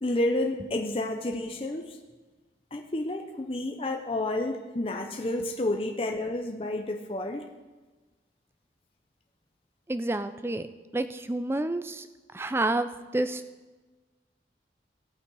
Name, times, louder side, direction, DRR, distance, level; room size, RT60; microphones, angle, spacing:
voice 1, 0.0-2.0 2.7-7.5, left 1 dB, 30° left, 3 dB, 0.6 m, -30 dB
voice 2, 9.9-10.7 10.9-12.1 12.3-13.4, right 2 dB, 15° right, 11 dB, 0.4 m, -29 dB
17.0 x 5.8 x 4.7 m, 1.3 s
head